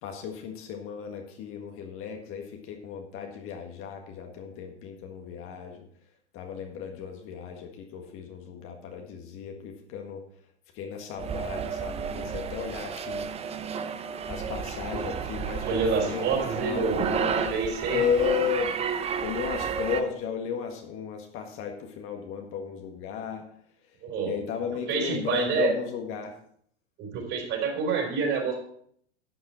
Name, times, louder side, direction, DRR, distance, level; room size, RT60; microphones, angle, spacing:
voice 1, 0.0-5.9 6.3-10.2 10.7-13.3 14.3-17.6 17.9-18.7 19.2-23.4 24.2-26.3, left 7 dB, 35° left, 3 dB, 1.7 m, -34 dB
sound 1, 11.2-20.0, right 7 dB, 15° right, 0.8 m, -32 dB
voice 2, 15.6-17.1 17.5-18.0 24.0-24.3 24.9-25.7 27.0-28.6, right 5 dB, 35° right, 1 dB, 4.2 m, -27 dB
12.0 x 8.5 x 4.4 m, 0.64 s
figure-of-eight pair, 95°, 35 cm